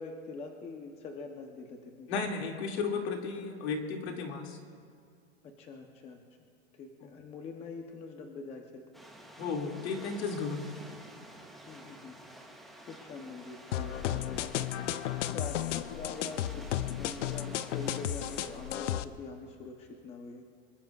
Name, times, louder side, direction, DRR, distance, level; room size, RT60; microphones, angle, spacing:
voice 1, 0.0-2.3 5.4-6.2 6.7-8.8 11.7-12.2 12.9-14.6 15.3-20.4, left 4 dB, 15° left, 3 dB, 0.8 m, -44 dB
voice 2, 2.1-4.6 7.0-7.1 9.4-10.7, left 4 dB, 65° left, 1 dB, 2.5 m, -34 dB
sound 1, 8.9-18.9, right 1 dB, ahead, 0.3 m, -51 dB
sound 2, 13.7-19.0, left 12 dB, 85° left, 0.7 m, -34 dB
25.0 x 21.5 x 2.4 m, 2.2 s
supercardioid pair, 160°, 35 cm